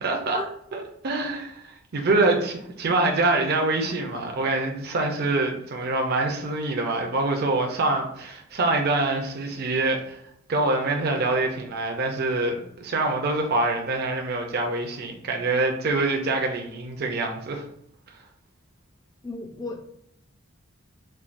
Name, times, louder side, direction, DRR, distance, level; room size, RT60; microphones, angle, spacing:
voice 1, 0.0-0.4 0.7-10.2 10.5-17.6, right 2 dB, 50° right, 2 dB, 0.5 m, -25 dB
voice 2, 19.2-19.9, left 2 dB, 20° left, 2 dB, 0.5 m, -35 dB
4.4 x 2.3 x 2.5 m, 0.74 s
head